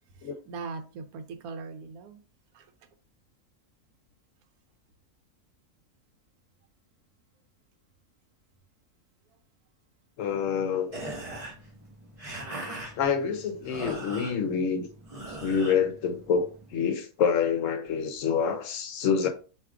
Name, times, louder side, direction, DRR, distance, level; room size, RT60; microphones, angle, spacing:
voice 1, 0.1-2.2 2.5-2.7, right 4 dB, 90° right, 1.1 m, -40 dB
voice 2, 10.2-11.0 13.0-14.9 15.4-19.3, left 6 dB, 70° left, 0.9 m, -27 dB
sound 1, 10.9-16.7, right 1 dB, 30° right, 0.9 m, -41 dB
4.6 x 2.9 x 2.4 m
omnidirectional pair, 1.5 m